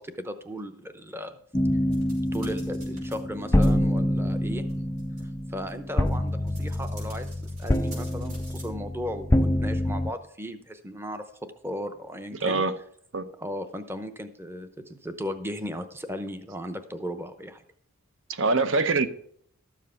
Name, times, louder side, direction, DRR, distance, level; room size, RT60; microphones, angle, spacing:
voice 1, 0.0-1.4 2.3-4.6 5.5-11.2 11.6-12.6 13.4-17.6, equal, 10° right, 9 dB, 0.8 m, -36 dB
sound 1, 1.5-10.1, left 1 dB, 10° left, 0.4 m, -26 dB
sound 2, 1.9-3.1 3.4-3.7 4.3-4.4 4.7-4.8 5.0-5.2 5.7-8.6, right 2 dB, 80° right, 5.5 m, -49 dB
voice 2, 12.3-12.7 13.1-13.3 18.3-19.1, right 3 dB, 60° right, 11 dB, 0.8 m, -24 dB
12.5 x 7.4 x 5.7 m, 0.64 s
head